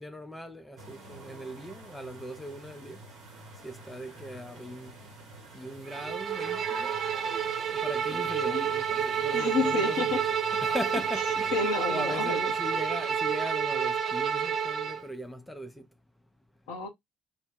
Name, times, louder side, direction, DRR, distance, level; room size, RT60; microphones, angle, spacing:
voice 1, 0.0-3.0 3.6-5.0 5.5-6.9 7.7-10.2 10.5-11.6 11.9-15.9, left 1 dB, 10° left, 0.5 m, -39 dB
sound 1, 0.8-14.3, right 3 dB, 65° right, 0.9 m, -47 dB
Bowed string instrument, 5.9-15.0, right 7 dB, 45° right, 0.3 m, -29 dB
voice 2, 8.1-8.6 9.3-10.2 11.5-12.5 16.7-16.9, left 4 dB, 70° left, 0.7 m, -31 dB
2.1 x 2.0 x 3.3 m
figure-of-eight pair, 50°, 0 cm